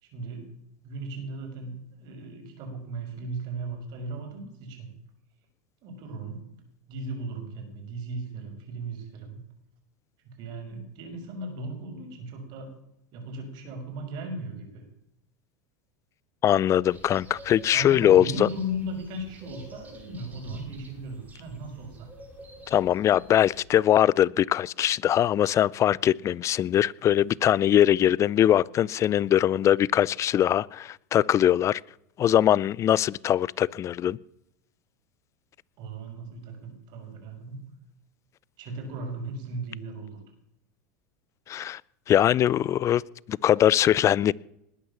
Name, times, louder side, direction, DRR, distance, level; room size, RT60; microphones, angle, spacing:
voice 1, 0.0-0.5 0.8-4.9 5.8-6.5 6.9-9.4 10.4-12.7 13.1-14.8 17.7-22.1 35.8-37.6 38.6-40.2, right 2 dB, 55° right, 6.2 m, -37 dB
voice 2, 16.4-18.5 22.7-31.8 32.2-34.2 41.5-41.8 42.1-43.0 43.3-44.3, left 11 dB, 35° left, 0.5 m, -22 dB
sound 1, 16.9-23.6, right 2 dB, 20° right, 5.6 m, -48 dB
20.5 x 9.4 x 7.2 m
hypercardioid pair, 105°, 9 cm